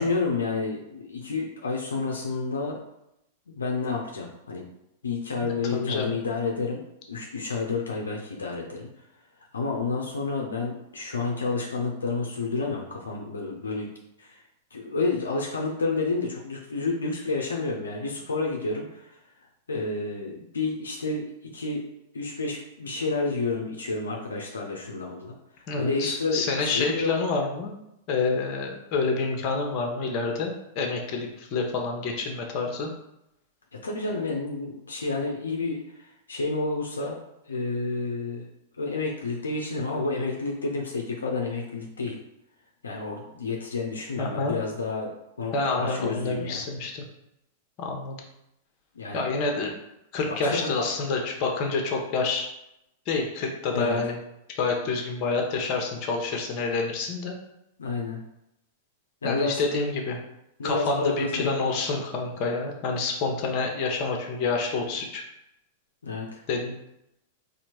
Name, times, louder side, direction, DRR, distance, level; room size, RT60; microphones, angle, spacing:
voice 1, 0.0-2.8 3.5-4.7 5.0-6.8 7.1-8.9 9.5-13.9 14.2-14.4 14.7-19.2 19.7-21.3 21.5-21.9 22.1-27.1 33.7-37.2 37.4-38.5 38.8-42.2 42.8-46.6 48.9-49.3 50.3-50.9 53.7-54.0 57.8-58.2 59.2-59.6 60.6-61.6 66.0-66.4, left 3 dB, 80° left, 0 dB, 0.7 m, -30 dB
voice 2, 5.4-6.1 25.7-27.8 28.1-32.9 44.2-44.5 45.5-47.1 47.8-48.2 49.1-49.7 50.1-52.5 53.1-54.2 54.5-57.4 59.2-60.2 60.6-65.2 66.5-66.7, left 4 dB, 40° left, 2 dB, 1.0 m, -28 dB
4.3 x 2.8 x 4.3 m, 0.83 s
figure-of-eight pair, 100°, 0 cm